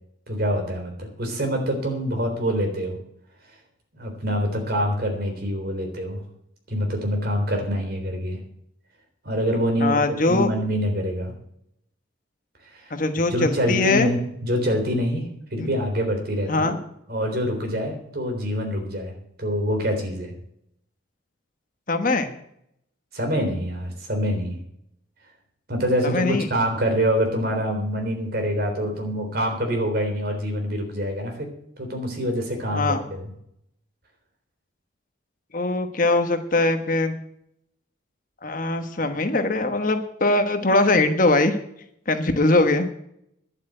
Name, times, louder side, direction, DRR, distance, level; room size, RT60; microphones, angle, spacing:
voice 1, 0.3-3.0 3.9-6.2 6.7-8.4 9.2-11.3 12.7-12.9 13.3-16.7 17.1-19.1 19.4-20.3 23.1-24.6 25.7-31.5 31.8-33.3, equal, 50° right, 3 dB, 3.8 m, -25 dB
voice 2, 9.8-10.5 12.9-14.1 15.6-15.7 16.5-16.8 21.9-22.3 26.0-26.5 32.7-33.0 35.5-37.1 38.4-41.6 42.1-42.9, left 2 dB, 45° left, 7 dB, 1.2 m, -21 dB
11.0 x 8.2 x 9.0 m, 0.72 s
head